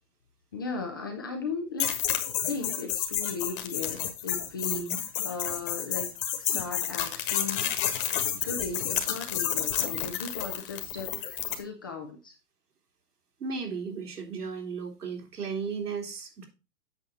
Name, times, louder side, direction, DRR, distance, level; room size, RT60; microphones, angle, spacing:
voice 1, 0.5-4.9 5.2-6.1 6.4-7.6 8.4-12.3, left 4 dB, 15° left, 3 dB, 0.4 m, -37 dB
sound 1, 1.8-11.6, left 10 dB, 35° left, 1.5 m, -30 dB
voice 2, 4.6-5.0 13.4-16.4, right 5 dB, 80° right, 1 dB, 3.4 m, -35 dB
8.3 x 6.4 x 4.0 m, 0.29 s
hypercardioid pair, 140°, 46 cm